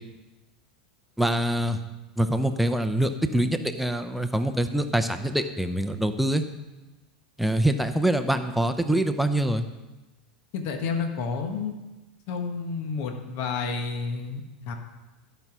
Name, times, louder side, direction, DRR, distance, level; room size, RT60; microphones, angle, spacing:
voice 1, 1.2-1.8 2.2-6.4 7.4-9.6, right 1 dB, ahead, 8 dB, 0.7 m, -24 dB
voice 2, 10.5-11.7 12.3-14.7, left 5 dB, 55° left, 4 dB, 1.5 m, -30 dB
13.5 x 5.7 x 6.1 m, 1.1 s
hypercardioid pair, 100°, 4 cm